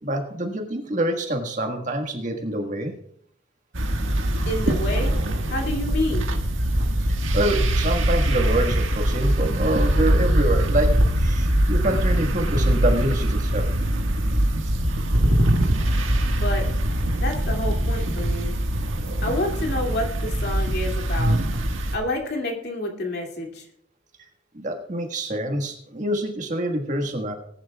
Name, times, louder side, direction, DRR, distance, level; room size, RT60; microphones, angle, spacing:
voice 1, 0.0-2.9 7.0-13.7 24.5-27.3, right 1 dB, 40° right, 4 dB, 1.6 m, -26 dB
sound 1, 3.7-22.0, right 1 dB, 80° right, 1.7 m, -22 dB
voice 2, 4.5-5.2 5.5-6.3 16.4-16.7 17.2-18.6 19.2-21.4 21.9-23.6, left 1 dB, 55° left, 2 dB, 2.5 m, -28 dB
20.0 x 10.5 x 2.4 m, 0.66 s
head